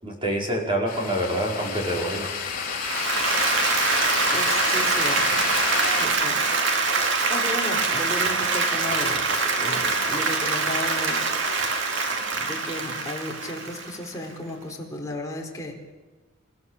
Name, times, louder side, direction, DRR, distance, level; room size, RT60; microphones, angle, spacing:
voice 1, 0.0-2.3, right 1 dB, 25° right, 0 dB, 5.1 m, -26 dB
sound 1, 0.9-6.1, left 6 dB, 40° left, 4.1 m, -29 dB
Applause, 2.8-14.1, right 4 dB, 55° right, 2.6 m, -24 dB
voice 2, 4.3-5.4 5.9-6.4 7.0-11.2 12.3-15.8, left 1 dB, 15° left, -1 dB, 4.3 m, -34 dB
28.0 x 16.5 x 7.4 m, 1.2 s
head